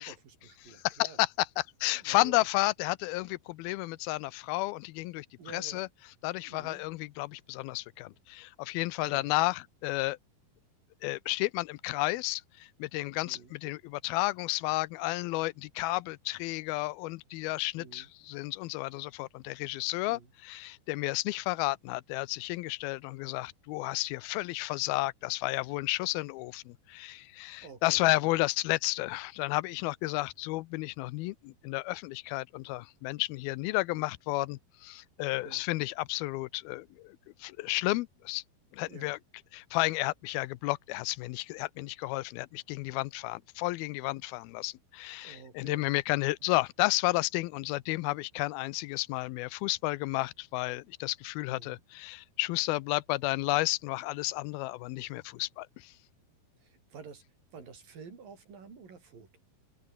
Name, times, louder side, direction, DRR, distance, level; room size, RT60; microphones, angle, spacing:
voice 1, 0.0-1.2 1.9-2.5 5.4-5.8 6.4-6.8 9.0-9.3 13.2-13.5 17.8-18.1 20.1-20.3 27.6-28.1 35.4-35.6 38.9-39.1 45.2-45.9 51.5-51.8 56.6-57.2 57.5-59.4, right 5 dB, 60° right, 6.7 m, -50 dB
voice 2, 0.6-5.9 6.2-10.2 11.0-38.4 38.7-39.2 39.5-55.9, left 20 dB, 80° left, 2.5 m, -32 dB
open air
omnidirectional pair, 4.5 m